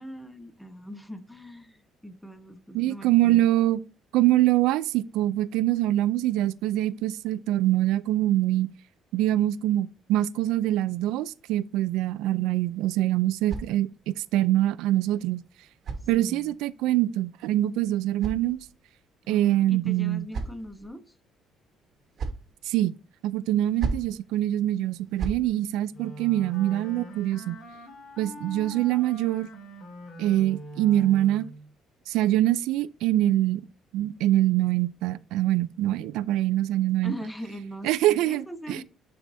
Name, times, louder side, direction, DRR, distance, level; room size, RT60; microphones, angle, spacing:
voice 1, 0.0-3.4 16.2-16.6 19.2-21.1 27.7-27.8 37.0-38.8, equal, 5° left, 1.0 m, -40 dB
voice 2, 2.7-3.8 4.1-8.7 9.1-15.4 16.1-18.6 19.3-20.3 22.7-23.0 23.2-27.6 28.2-29.5 30.2-31.5 32.1-33.7 33.9-37.1 37.8-38.8, right 14 dB, 90° right, 0.4 m, -24 dB
sound 1, 12.6-14.2 15.2-16.7 17.7-19.0 19.8-20.9 21.8-22.5 23.5-24.2 24.9-25.5, right 4 dB, 45° right, 1.3 m, -37 dB
Wind instrument woodwind instrument, 25.9-31.7, right 1 dB, 55° left, 3.9 m, -43 dB
10.5 x 4.8 x 2.7 m
cardioid pair, 135°, 0 cm